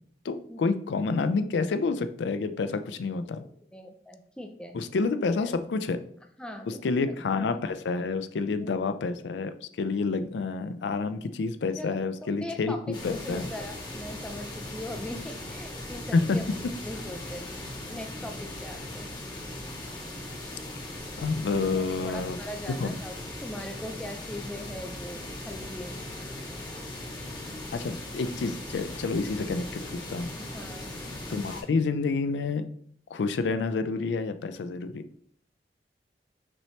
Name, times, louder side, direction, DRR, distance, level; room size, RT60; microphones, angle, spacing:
voice 1, 0.2-3.4 4.7-6.0 6.7-13.5 16.1-16.4 21.2-22.4 22.8-22.9 27.7-30.3 31.3-32.7 33.1-35.0, left 4 dB, 85° left, 10 dB, 0.4 m, -28 dB
voice 2, 3.7-4.8 5.4-5.5 6.4-7.2 8.6-8.7 11.8-12.8 13.1-16.5 16.8-17.5 17.9-19.1 21.8-26.0 30.4-30.9, left 1 dB, 5° left, 4 dB, 0.5 m, -40 dB
sound 1, 12.9-31.6, left 1 dB, 25° left, 0.9 m, -39 dB
6.1 x 2.8 x 3.1 m, 0.63 s
head